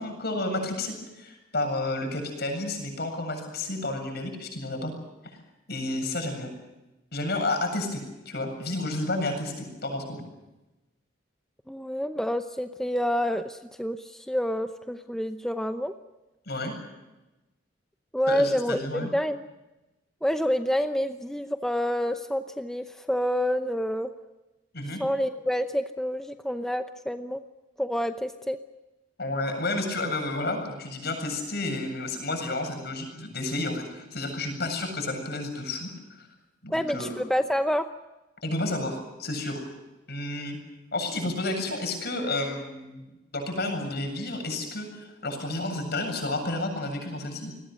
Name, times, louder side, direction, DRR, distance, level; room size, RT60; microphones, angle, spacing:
voice 1, 0.0-4.9 5.3-5.4 5.7-6.5 7.1-8.0 8.3-10.2 16.5-16.7 18.3-19.1 24.7-25.0 29.2-36.3 36.6-37.1 38.4-39.6 40.1-40.6 40.9-47.5, left 2 dB, 55° left, 5 dB, 7.7 m, -31 dB
voice 2, 11.7-15.9 18.1-19.4 20.2-24.1 25.0-27.4 27.8-28.6 36.7-37.9, equal, 5° left, 7 dB, 0.8 m, -28 dB
28.5 x 21.0 x 6.5 m, 1.0 s
head